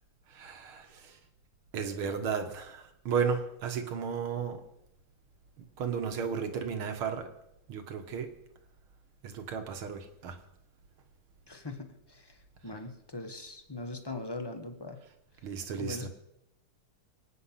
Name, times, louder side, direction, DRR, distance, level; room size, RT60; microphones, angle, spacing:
voice 1, 0.4-0.9 1.7-4.6 5.8-7.3 7.7-8.3 9.2-10.4 15.4-16.1, right 6 dB, 85° right, 7 dB, 2.4 m, -33 dB
voice 2, 11.5-12.4 12.6-15.0 15.8-16.1, left 2 dB, 15° left, 6 dB, 1.0 m, -40 dB
24.0 x 9.2 x 5.8 m, 0.83 s
omnidirectional pair, 2.3 m